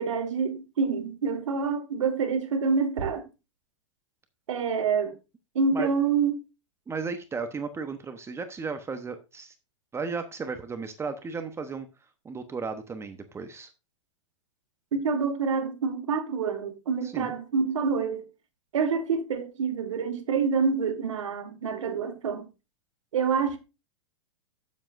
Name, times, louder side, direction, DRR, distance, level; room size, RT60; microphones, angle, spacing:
voice 1, 0.0-3.2 4.5-5.2 5.6-6.3 14.9-18.3 18.7-22.5 23.1-23.6, right 5 dB, 75° right, 1.9 m, -27 dB
voice 2, 6.9-9.5 9.9-11.9 12.2-13.7 17.0-17.3, right 4 dB, 15° right, 0.9 m, -34 dB
12.0 x 7.4 x 2.6 m
hypercardioid pair, 110°, 17 cm